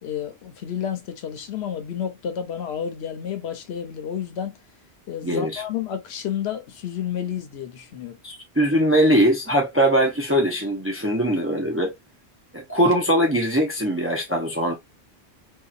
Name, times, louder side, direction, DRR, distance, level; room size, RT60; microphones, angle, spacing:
voice 1, 0.0-4.6 5.1-8.2, left 8 dB, 80° left, 0.9 m, -30 dB
voice 2, 5.2-5.6 8.2-11.9 12.5-14.7, right 1 dB, 20° right, 0.4 m, -21 dB
2.7 x 2.3 x 2.3 m
omnidirectional pair, 1.1 m